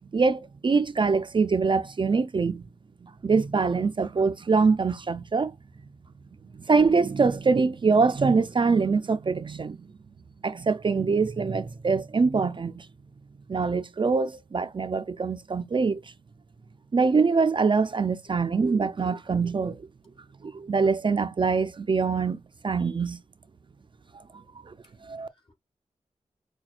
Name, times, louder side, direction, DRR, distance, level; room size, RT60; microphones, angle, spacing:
voice 1, 0.1-2.6 3.0-5.5 6.7-9.8 10.4-12.9 13.5-16.0 16.9-19.9 20.4-23.2 24.1-24.2 24.7-24.8 25.0-25.3, right 4 dB, 45° right, 0.4 m, -24 dB
voice 2, 24.3-25.0 25.3-25.5, left 3 dB, 45° left, 1.9 m, -61 dB
5.9 x 2.2 x 2.4 m
cardioid pair, 65°, 12 cm